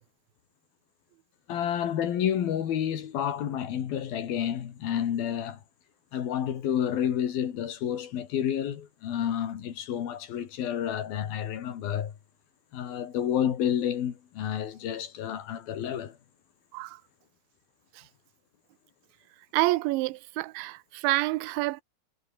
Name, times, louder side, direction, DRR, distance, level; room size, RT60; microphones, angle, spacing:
voice 1, 1.5-5.6 6.1-12.1 12.7-16.2, left 9 dB, 55° left, 3.6 m, -30 dB
voice 2, 19.5-21.8, right 20 dB, 80° right, 2.9 m, -28 dB
omnidirectional pair, 5.7 m